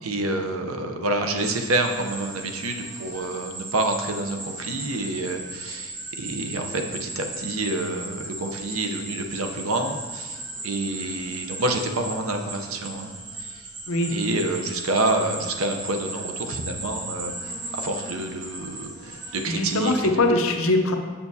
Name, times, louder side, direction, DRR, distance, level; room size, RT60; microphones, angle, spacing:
voice 1, 0.0-13.1 13.4-13.7 14.1-20.1, right 2 dB, 65° right, 4 dB, 0.7 m, -28 dB
sound 1, 1.4-20.0, right 2 dB, 35° right, 1.4 m, -37 dB
voice 2, 19.4-21.0, left 2 dB, 65° left, 4 dB, 0.7 m, -22 dB
7.1 x 6.8 x 2.7 m, 1.4 s
head